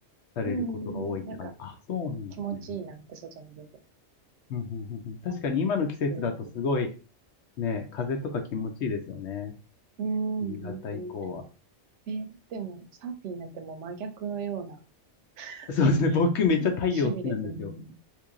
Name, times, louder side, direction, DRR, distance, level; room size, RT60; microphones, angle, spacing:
voice 1, 0.4-1.5 2.4-3.7 5.3-5.7 6.1-6.4 10.0-11.1 12.1-14.8 15.4-15.9 16.4-17.9, right 5 dB, 85° right, 6 dB, 0.9 m, -36 dB
voice 2, 0.9-2.3 4.5-6.9 7.6-9.5 10.5-11.4 15.7-17.7, left 4 dB, 75° left, 4 dB, 0.9 m, -28 dB
3.0 x 2.6 x 3.6 m, 0.34 s
omnidirectional pair, 1.2 m